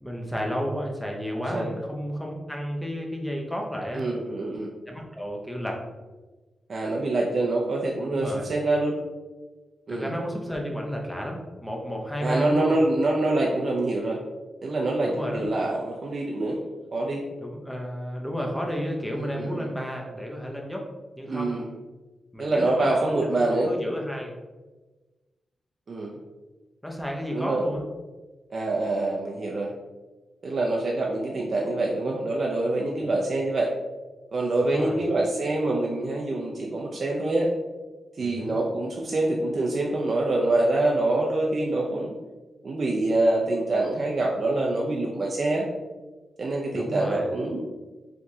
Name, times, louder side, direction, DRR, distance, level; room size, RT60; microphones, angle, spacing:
voice 1, 0.0-4.0 4.9-5.8 8.0-8.5 9.9-12.8 15.0-15.5 17.4-20.9 21.2-21.6 22.3-24.3 26.8-27.8 33.0-33.1 34.6-35.0 38.2-38.5 46.7-47.3, equal, 5° left, 0 dB, 0.6 m, -32 dB
voice 2, 3.9-4.7 6.7-9.0 9.9-10.1 12.2-14.2 14.6-16.6 16.9-17.2 19.1-19.7 21.3-21.7 22.4-23.7 25.9-26.2 27.3-27.6 28.5-29.7 30.4-33.7 34.3-37.5 38.2-42.1 42.6-45.7 46.4-47.6, right 2 dB, 40° right, -2 dB, 0.4 m, -25 dB
4.6 x 3.5 x 2.7 m, 1.2 s
wide cardioid pair, 170°, 0 cm